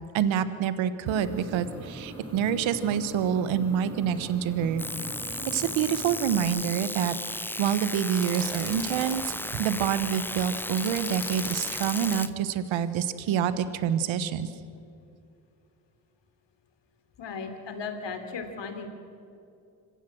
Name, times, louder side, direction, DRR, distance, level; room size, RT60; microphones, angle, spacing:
voice 1, 0.1-4.8 5.5-14.5, right 8 dB, 80° right, 13 dB, 1.2 m, -27 dB
sound 1, 1.1-6.4, right 2 dB, 30° right, 6.9 m, -41 dB
sound 2, 4.8-12.3, left 1 dB, 5° left, 0.7 m, -35 dB
sound 3, 8.2-9.1 10.8-12.3, left 4 dB, 30° left, 2.6 m, -38 dB
voice 2, 17.2-18.9, left 5 dB, 65° left, 7 dB, 3.2 m, -36 dB
26.0 x 15.5 x 7.7 m, 2.5 s
supercardioid pair, 50°, 46 cm